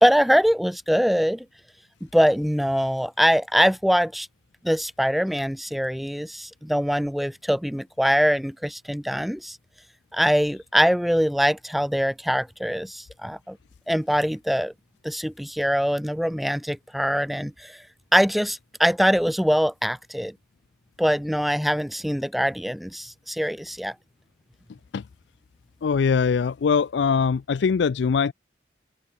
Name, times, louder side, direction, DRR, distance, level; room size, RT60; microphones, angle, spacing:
voice 1, 0.0-1.4 2.1-4.3 4.6-9.6 10.1-13.6 13.9-14.7 15.0-17.8 18.1-20.3 21.0-23.9, equal, ahead, 0.4 m, -23 dB
voice 2, 25.8-28.3, left 5 dB, 70° left, 0.4 m, -22 dB
open air
head